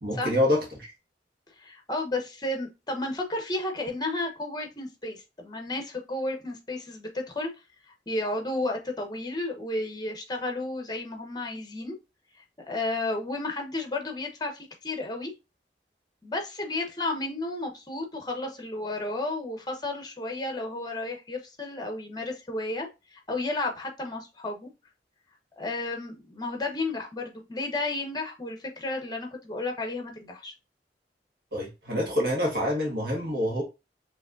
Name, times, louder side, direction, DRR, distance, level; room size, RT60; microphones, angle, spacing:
voice 1, 0.0-0.9 31.5-33.6, left 1 dB, 65° right, 1.6 m, -26 dB
voice 2, 1.6-7.5 8.1-12.0 12.7-15.3 16.2-24.7 25.6-30.5, left 2 dB, 25° left, 0.9 m, -32 dB
4.9 x 3.2 x 2.5 m
head